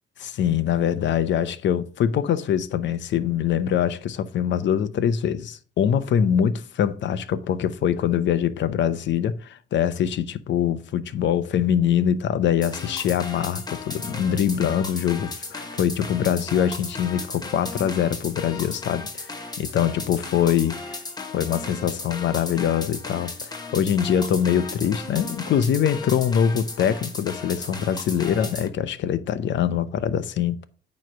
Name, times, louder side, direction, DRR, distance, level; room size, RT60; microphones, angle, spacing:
voice 1, 0.2-20.8 21.3-30.6, left 9 dB, 65° left, 0.7 m, -23 dB
sound 1, 12.6-28.7, left 3 dB, 20° left, 1.3 m, -35 dB
9.0 x 3.2 x 6.1 m
cardioid pair, 90°, 20 cm